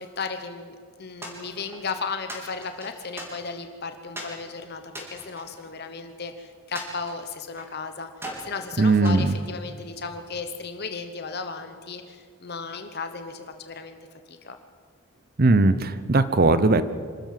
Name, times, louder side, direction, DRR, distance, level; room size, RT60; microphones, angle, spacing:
voice 1, 0.0-8.1 8.4-14.0 14.3-14.6, left 4 dB, 50° left, 8 dB, 1.0 m, -35 dB
sound 1, 1.2-1.9 2.3-3.7 4.2-4.4 4.9-6.2 6.8-7.8 8.2-8.5 9.0-10.1, equal, 10° right, 4.0 m, -40 dB
voice 2, 8.8-9.3 15.4-16.8, right 3 dB, 45° right, 13 dB, 0.7 m, -19 dB
26.0 x 13.0 x 7.7 m, 2.1 s
head